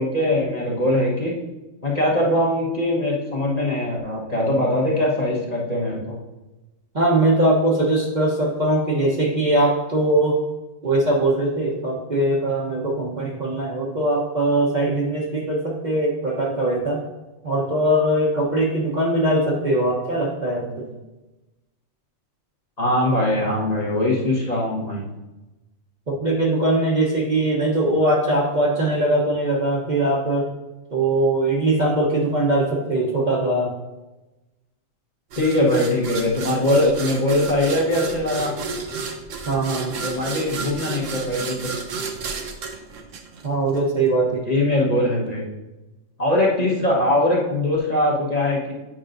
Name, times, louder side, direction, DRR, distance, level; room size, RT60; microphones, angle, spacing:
voice 1, 0.0-1.3 1.8-6.2 22.8-25.0 35.4-38.5 40.0-41.5 44.4-45.4 46.2-48.7, left 1 dB, 30° left, -5 dB, 1.3 m, -21 dB
voice 2, 6.9-10.4 10.8-17.0 17.4-20.9 26.1-30.5 30.9-33.7 39.4-40.0 43.4-44.4, right 1 dB, 40° right, -3 dB, 1.0 m, -21 dB
sound 1, 35.3-43.8, right 4 dB, 80° right, 1.1 m, -32 dB
9.0 x 5.4 x 2.6 m, 1.1 s
omnidirectional pair, 1.3 m